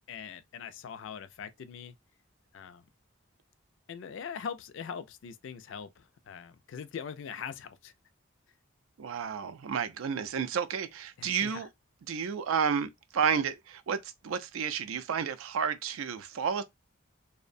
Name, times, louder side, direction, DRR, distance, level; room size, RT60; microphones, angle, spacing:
voice 1, 0.1-1.9 2.5-2.8 3.9-7.9 11.2-11.7, left 7 dB, 65° left, 0.3 m, -42 dB
voice 2, 9.0-11.7 12.1-16.6, right 7 dB, 80° right, 0.4 m, -31 dB
2.6 x 2.1 x 2.5 m
head